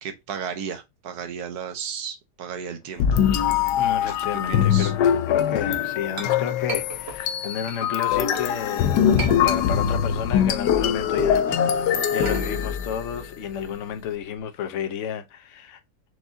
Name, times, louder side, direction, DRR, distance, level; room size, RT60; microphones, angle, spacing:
voice 1, 0.0-3.0 4.0-4.2 4.5-4.9, right 7 dB, 70° right, 1.2 m, -34 dB
sound 1, 3.0-13.3, left 9 dB, 80° left, 1.2 m, -22 dB
voice 2, 3.8-15.8, left 8 dB, 60° left, 0.9 m, -32 dB
Chink clink, 5.6-8.5 8.9-10.0 10.3-14.4, right 3 dB, 45° right, 1.0 m, -38 dB
4.7 x 2.7 x 3.6 m
omnidirectional pair, 1.8 m